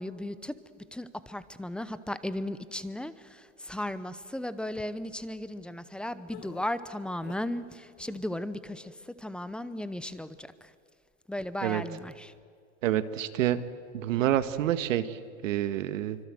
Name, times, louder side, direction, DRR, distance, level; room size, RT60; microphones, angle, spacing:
voice 1, 0.0-10.7 11.3-12.3, left 1 dB, ahead, 14 dB, 0.8 m, -36 dB
sound 1, 6.3-7.6 8.0-8.5, left 13 dB, 50° left, 1.7 m, -49 dB
voice 2, 12.8-13.6 13.9-16.2, right 12 dB, 70° right, 11 dB, 1.7 m, -28 dB
26.5 x 25.0 x 7.8 m, 2.1 s
hypercardioid pair, 130°, 41 cm